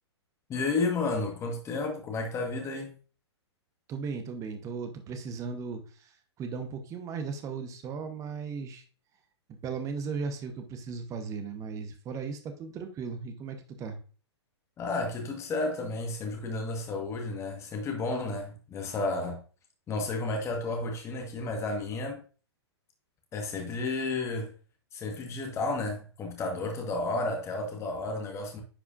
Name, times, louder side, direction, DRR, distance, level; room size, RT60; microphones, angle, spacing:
voice 1, 0.5-2.9 14.8-19.4 19.9-22.2 23.3-24.5 24.9-28.6, left 3 dB, 20° left, 1.4 m, -32 dB
voice 2, 3.9-8.8 9.5-14.0, right 5 dB, 20° right, 1.0 m, -37 dB
10.0 x 4.8 x 2.5 m
figure-of-eight pair, 115°, 15 cm